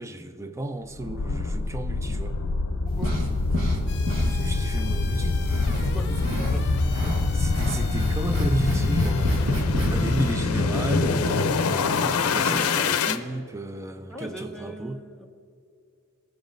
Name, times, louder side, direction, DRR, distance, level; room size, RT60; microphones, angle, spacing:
voice 1, 0.0-2.4 4.2-5.4 6.2-6.6 7.3-15.0, right 1 dB, 15° right, 9 dB, 0.4 m, -33 dB
sound 1, 1.0-13.2, left 3 dB, 90° left, 0.5 m, -25 dB
voice 2, 2.8-3.2 5.7-7.3 14.1-15.3, equal, ahead, -1 dB, 0.9 m, -40 dB
sound 2, 3.0-3.8 4.1-4.9 5.2-6.6 6.9-9.9 10.2-10.3, equal, 70° right, 1.7 m, -28 dB
sound 3, 3.9-10.3, left 4 dB, 50° left, 1.1 m, -41 dB
16.0 x 7.2 x 2.6 m, 2.5 s
head